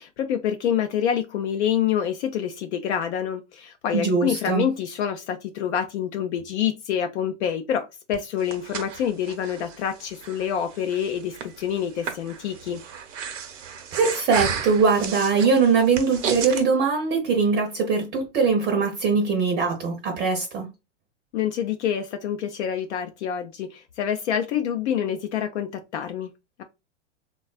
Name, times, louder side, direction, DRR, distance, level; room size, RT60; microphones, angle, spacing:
voice 1, 0.0-12.8 21.3-26.3, left 9 dB, 65° left, 0.5 m, -27 dB
voice 2, 3.9-4.6 13.9-20.7, right 5 dB, 25° right, 0.6 m, -21 dB
Breathing, 8.1-16.6, right 6 dB, 80° right, 0.8 m, -34 dB
3.4 x 2.3 x 2.3 m
hypercardioid pair, 125°, 37 cm